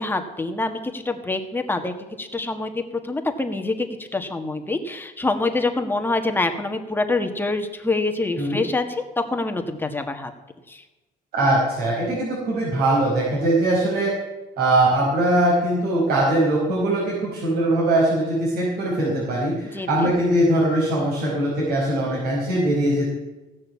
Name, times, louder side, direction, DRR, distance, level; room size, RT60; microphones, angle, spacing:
voice 1, 0.0-8.8 9.2-10.3 10.7-10.8 19.7-20.1, left 2 dB, 10° left, 5 dB, 1.6 m, -26 dB
voice 2, 11.3-14.1 14.6-23.1, right 1 dB, 65° right, -6 dB, 5.1 m, -21 dB
16.5 x 6.5 x 8.6 m, 1.1 s
cardioid pair, 110°, 17 cm